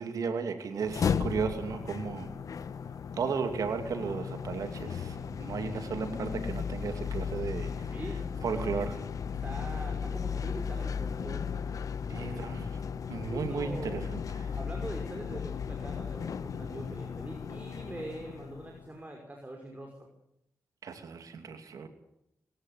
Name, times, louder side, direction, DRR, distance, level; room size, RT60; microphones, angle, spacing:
voice 1, 0.0-2.3 3.1-7.9 8.4-9.0 12.1-12.8 13.1-14.5 20.8-21.9, right 5 dB, 85° right, 8 dB, 2.5 m, -35 dB
sound 1, 0.8-18.9, left 6 dB, 75° left, 1.2 m, -36 dB
voice 2, 7.9-8.4 9.4-11.5 12.2-12.4 13.3-14.0 14.5-20.1, right 1 dB, 25° right, 1 dB, 5.5 m, -43 dB
22.5 x 15.0 x 9.6 m, 0.81 s
cardioid pair, 70°, 6 cm